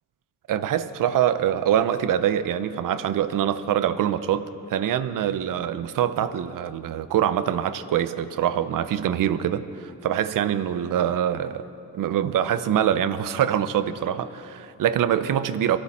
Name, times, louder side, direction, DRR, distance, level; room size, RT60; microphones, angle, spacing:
voice 1, 0.5-11.7 11.9-15.8, right 10 dB, 60° right, 12 dB, 0.7 m, -24 dB
22.5 x 14.0 x 4.2 m, 2.7 s
wide cardioid pair, 175°, 37 cm